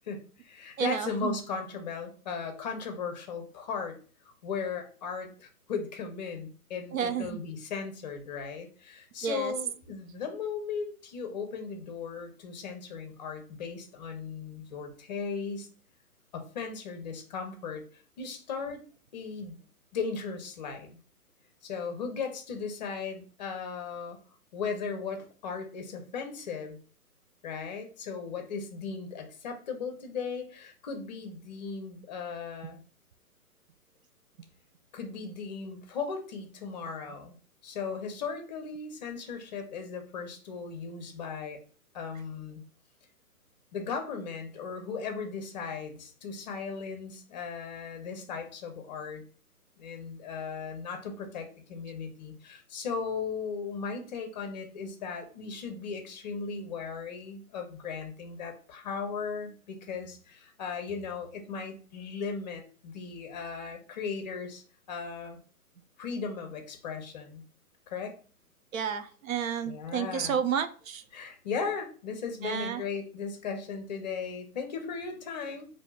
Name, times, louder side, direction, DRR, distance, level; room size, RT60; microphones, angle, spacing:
voice 1, 0.1-4.0 4.4-15.7 16.3-17.8 18.2-18.8 19.1-19.6 19.9-21.0 21.6-24.2 24.5-26.8 27.4-32.8 34.9-37.4 37.6-41.6 41.9-42.6 43.7-49.2 49.8-64.6 64.9-65.4 66.0-67.4 67.9-68.2 69.6-70.4 71.1-75.7, left 5 dB, 30° left, 5 dB, 0.7 m, -37 dB
voice 2, 0.8-1.3 6.9-7.4 9.2-9.5 68.7-71.0 72.4-72.8, right 8 dB, 65° right, 10 dB, 0.5 m, -31 dB
4.6 x 2.7 x 2.3 m, 0.41 s
hypercardioid pair, 145°, 44 cm